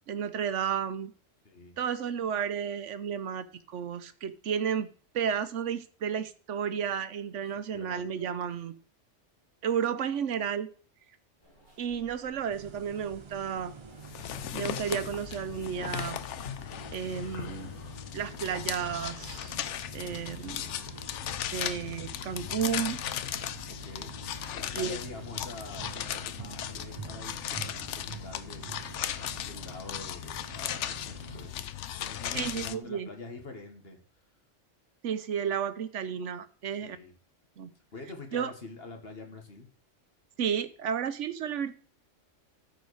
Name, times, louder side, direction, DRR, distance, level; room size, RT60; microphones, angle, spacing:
voice 1, 0.1-1.1 1.8-4.9 5.1-8.7 9.6-10.7 11.8-13.7 14.5-16.2 16.9-17.8 18.1-19.5 19.9-20.6 21.5-23.0 24.7-25.0 32.3-33.1 35.0-37.0 37.6-37.7 38.3-38.5 40.4-41.7, right 8 dB, 80° right, 12 dB, 1.1 m, -32 dB
voice 2, 1.5-1.8 7.6-8.1 20.5-20.8 23.7-24.2 24.5-28.8 29.1-31.7 32.0-34.0 36.8-37.1 37.9-39.7, left 3 dB, 50° left, 3 dB, 1.9 m, -46 dB
sound 1, 11.4-16.4, right 1 dB, 20° left, 6.0 m, -56 dB
sound 2, 12.5-31.5, right 7 dB, 45° right, 0.4 m, -48 dB
sound 3, 14.0-32.7, left 11 dB, 75° left, 0.9 m, -37 dB
13.5 x 4.8 x 4.8 m, 0.43 s
omnidirectional pair, 1.3 m